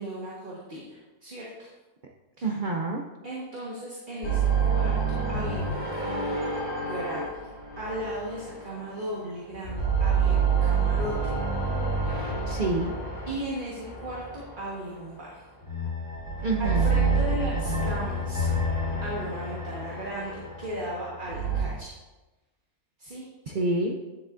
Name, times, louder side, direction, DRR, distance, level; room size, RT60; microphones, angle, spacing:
voice 1, 0.0-1.7 3.2-5.0 5.3-6.3 6.7-7.3 7.8-11.1 13.3-15.4 16.6-18.5 19.0-21.9 23.0-23.2, equal, 35° right, -5 dB, 1.3 m, -36 dB
voice 2, 2.4-3.0 12.5-12.9 16.4-17.0 23.5-24.0, right 2 dB, 90° right, 0 dB, 0.4 m, -27 dB
sound 1, 4.2-9.2 9.5-14.9 15.6-21.6, right 4 dB, 50° left, 2.6 m, -28 dB
9.8 x 7.6 x 2.5 m, 1.1 s
omnidirectional pair, 1.6 m